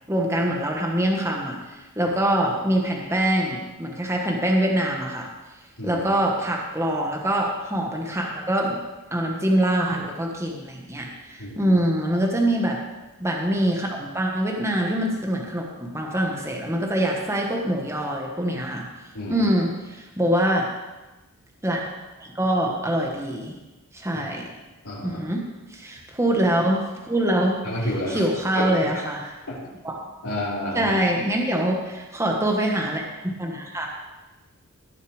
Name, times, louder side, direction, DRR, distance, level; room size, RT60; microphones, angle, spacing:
voice 1, 0.1-5.3 5.8-8.8 9.1-12.8 13.2-18.9 19.3-20.7 21.6-21.9 22.2-23.5 23.9-24.5 25.0-25.4 25.7-29.4 29.8-30.0 30.7-33.0 33.4-33.9, right 1 dB, 10° right, 0 dB, 1.3 m, -24 dB
voice 2, 24.8-25.2 27.6-28.2 28.5-28.7 29.5-29.6 30.2-30.9, left 1 dB, 75° left, -7 dB, 4.8 m, -29 dB
18.0 x 6.7 x 5.0 m, 1.1 s
head